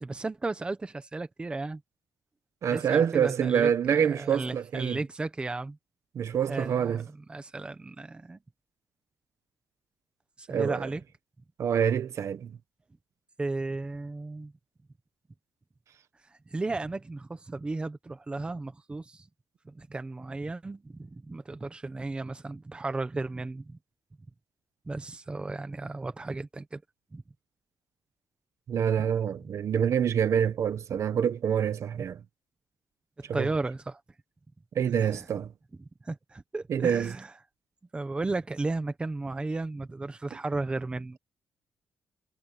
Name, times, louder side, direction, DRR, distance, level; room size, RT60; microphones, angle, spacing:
voice 1, 0.0-1.8 2.7-5.8 6.5-7.0 7.3-8.4 10.4-11.0 13.4-14.5 16.5-19.3 19.6-23.8 24.9-26.8 27.1-27.2 33.2-34.0 35.0-35.2 35.8-37.3 37.9-41.2, right 3 dB, 15° right, 1.1 m, -34 dB
voice 2, 2.6-5.0 6.1-7.0 10.5-10.9 11.6-12.6 28.7-32.2 33.4-33.5 34.7-35.5 36.7-37.1, right 8 dB, 50° right, 1.2 m, -26 dB
wide cardioid pair, 170°, 7 cm